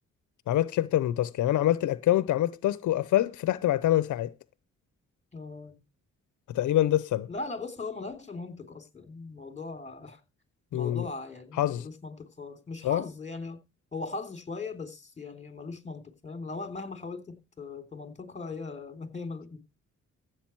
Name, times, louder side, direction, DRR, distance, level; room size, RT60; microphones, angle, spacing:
voice 1, 0.5-4.3 6.5-7.3 10.7-11.1 11.6-11.9 12.8-13.0, left 13 dB, 85° left, 0.7 m, -25 dB
voice 2, 5.3-5.8 7.3-10.2 10.7-13.6 13.9-19.6, left 3 dB, 25° left, 3.4 m, -39 dB
15.0 x 8.0 x 4.5 m
cardioid pair, 95°, 29 cm